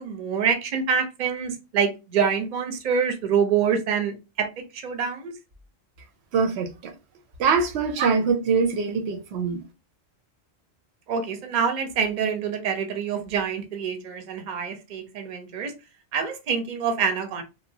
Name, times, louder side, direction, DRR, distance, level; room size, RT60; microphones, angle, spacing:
voice 1, 0.0-4.5 4.7-5.3 8.0-8.1 11.1-15.7 16.1-17.4, right 6 dB, 50° right, 0.7 m, -26 dB
voice 2, 6.3-6.9 7.4-9.6, right 5 dB, 90° right, 0.9 m, -23 dB
2.9 x 2.0 x 2.6 m
omnidirectional pair, 1.1 m